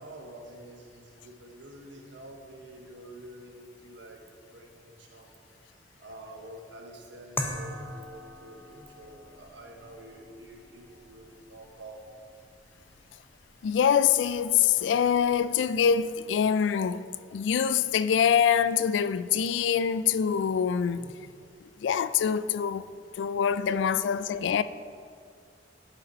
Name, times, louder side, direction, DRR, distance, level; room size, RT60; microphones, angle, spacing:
voice 1, 0.0-5.4 6.0-12.2 20.9-21.2 23.5-23.6, right 1 dB, 80° right, 1.1 m, -48 dB
sound 1, 7.4-16.2, left 1 dB, 10° left, 0.6 m, -43 dB
voice 2, 13.6-17.0 17.3-21.1 21.8-22.9 23.2-24.6, left 8 dB, 90° left, 0.3 m, -24 dB
11.5 x 5.2 x 4.3 m
head